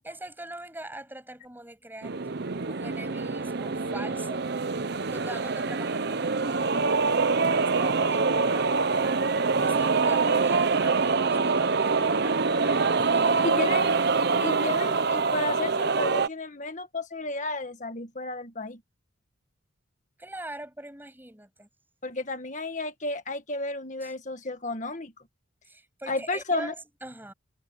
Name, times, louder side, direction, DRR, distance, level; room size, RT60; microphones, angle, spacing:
voice 1, 0.0-2.2 2.7-4.5 5.1-13.6 20.2-21.7 24.0-24.1 25.6-27.3, right 1 dB, 10° right, 7.7 m, -43 dB
sound 1, 2.0-16.3, right 4 dB, 50° right, 0.7 m, -25 dB
voice 2, 13.4-13.9 14.4-18.8 22.0-25.1 26.1-26.7, left 2 dB, 35° left, 1.7 m, -32 dB
head